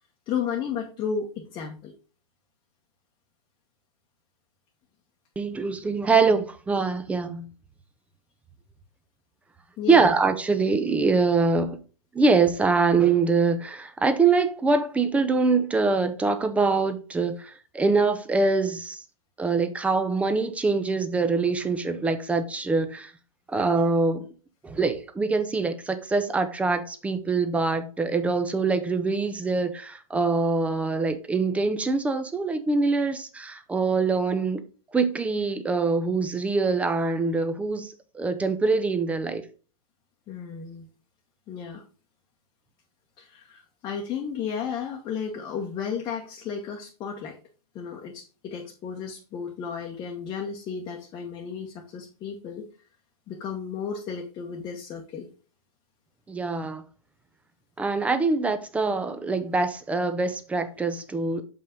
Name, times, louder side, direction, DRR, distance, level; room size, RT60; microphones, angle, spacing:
voice 1, 0.3-1.9 9.8-10.1 40.3-40.9 41.5-41.8 43.2-47.4 47.7-52.7 53.3-55.3, left 6 dB, 25° left, 1.0 m, -33 dB
voice 2, 5.4-7.5 9.9-11.8 12.1-19.0 19.4-23.1 23.5-24.3 24.6-34.6 34.9-39.4 56.3-56.8 57.8-61.4, right 4 dB, 5° right, 0.6 m, -24 dB
6.7 x 5.5 x 3.7 m
hypercardioid pair, 145°, 18 cm